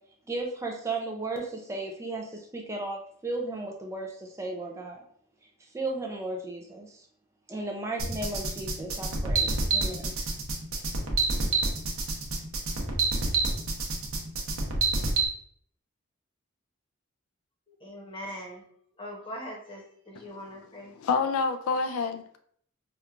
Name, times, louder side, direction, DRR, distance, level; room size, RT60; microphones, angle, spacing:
voice 1, 0.3-5.0 5.7-7.0 7.5-10.1, right 2 dB, 15° right, 1 dB, 0.3 m, -35 dB
sound 1, 8.0-15.3, right 3 dB, 80° right, 0.7 m, -28 dB
voice 2, 17.8-18.6 19.0-20.9, equal, 25° left, -1 dB, 0.9 m, -41 dB
voice 3, 21.0-22.4, left 4 dB, 75° left, 8 dB, 0.3 m, -28 dB
4.3 x 2.3 x 2.4 m, 0.63 s
head